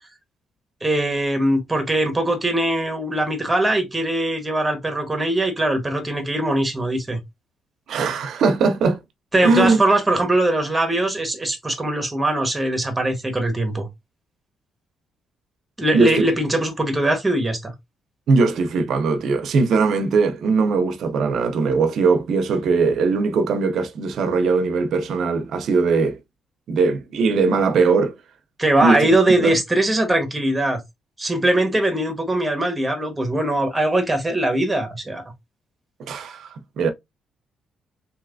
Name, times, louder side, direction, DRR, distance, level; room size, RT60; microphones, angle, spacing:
voice 1, 0.8-7.2 9.3-13.9 15.8-17.7 28.6-30.8 31.2-35.2, right 1 dB, 15° right, 1.1 m, -21 dB
voice 2, 7.9-9.0 9.4-9.8 15.9-16.2 18.3-26.2 26.7-28.1 28.8-29.1 29.4-29.6 36.0-36.9, right 4 dB, 70° right, 0.5 m, -20 dB
3.1 x 2.8 x 2.5 m
cardioid pair, 90°, 0 cm